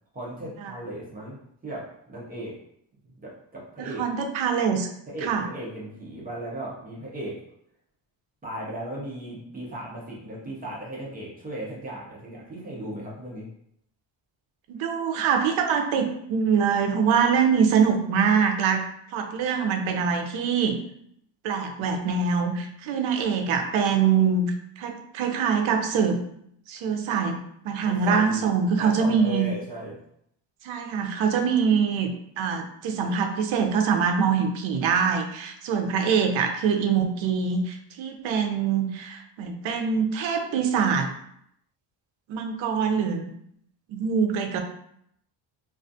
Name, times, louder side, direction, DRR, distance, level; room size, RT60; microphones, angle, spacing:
voice 1, 0.1-1.4 1.6-2.6 3.0-4.0 5.1-7.4 8.4-13.5 27.8-28.4 28.8-30.0, right 1 dB, 20° right, -4 dB, 0.4 m, -36 dB
voice 2, 3.8-4.9 5.2-5.4 14.7-18.8 19.1-20.8 21.4-26.2 26.7-27.4 27.6-29.5 30.6-32.1 32.4-41.1 42.3-43.3 43.9-44.6, right 6 dB, 75° right, 4 dB, 0.5 m, -24 dB
2.4 x 2.3 x 2.6 m, 0.72 s
cardioid pair, 175°, 49 cm